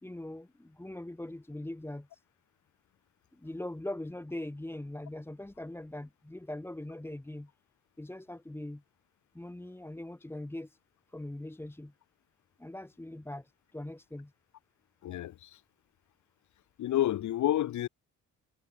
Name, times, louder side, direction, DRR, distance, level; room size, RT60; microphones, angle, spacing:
voice 1, 0.0-2.1 3.4-7.5 8.0-8.8 9.3-10.8 11.1-11.9 12.6-13.4 13.7-14.3, left 1 dB, 10° left, 1.7 m, -41 dB
voice 2, 15.0-15.5 16.8-17.9, left 13 dB, 70° left, 1.6 m, -29 dB
cardioid pair, 90°, 30 cm